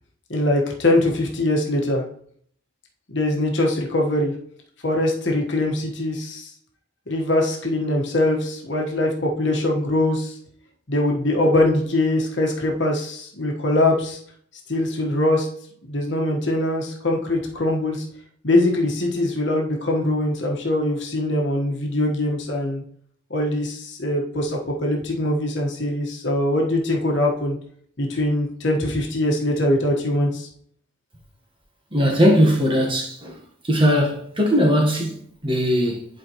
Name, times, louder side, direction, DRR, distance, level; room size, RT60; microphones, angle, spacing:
voice 1, 0.3-2.0 3.1-4.3 4.8-6.5 7.1-10.4 10.9-14.2 14.7-15.5 15.8-18.0 18.4-22.8 23.3-27.6 28.0-30.5, left 1 dB, 60° left, 1.4 m, -22 dB
voice 2, 31.9-33.4 33.6-36.1, equal, 25° right, 1.3 m, -19 dB
11.0 x 4.4 x 3.1 m
head